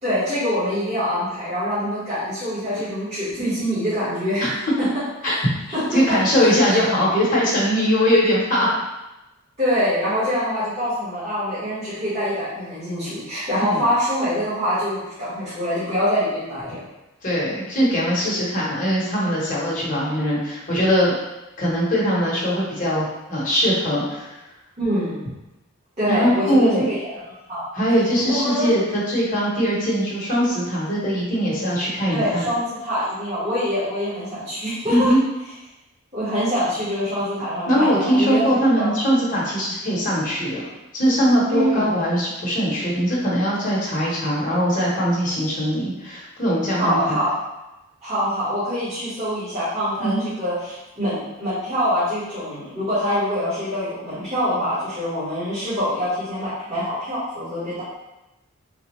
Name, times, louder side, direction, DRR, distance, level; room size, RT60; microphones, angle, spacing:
voice 1, 0.0-4.4 5.2-5.4 5.9-6.0 9.6-16.8 24.8-25.2 26.0-27.6 28.3-28.7 32.1-35.1 36.1-38.4 38.7-38.9 41.5-41.9 46.8-47.3 48.0-57.8, equal, 30° right, -17 dB, 1.5 m, -24 dB
voice 2, 5.9-8.7 13.7-13.8 17.2-21.2 21.6-24.3 26.1-26.9 27.7-32.5 34.9-35.2 37.7-40.6 40.9-47.2 50.0-50.2, equal, 35° left, -6 dB, 1.0 m, -21 dB
3.9 x 2.4 x 3.1 m, 0.98 s
head